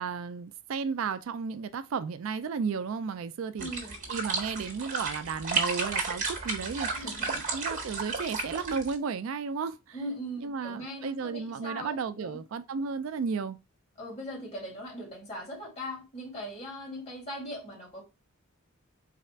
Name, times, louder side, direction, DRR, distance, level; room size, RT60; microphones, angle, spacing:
voice 1, 0.0-3.7 4.1-10.0 10.4-13.6, right 5 dB, 70° right, 0.4 m, -34 dB
voice 2, 3.6-3.9 6.9-7.4 9.9-12.4 14.0-18.0, equal, 35° left, 2.3 m, -40 dB
sound 1, 3.6-8.9, right 4 dB, 40° right, 1.4 m, -33 dB
4.1 x 2.4 x 4.3 m
head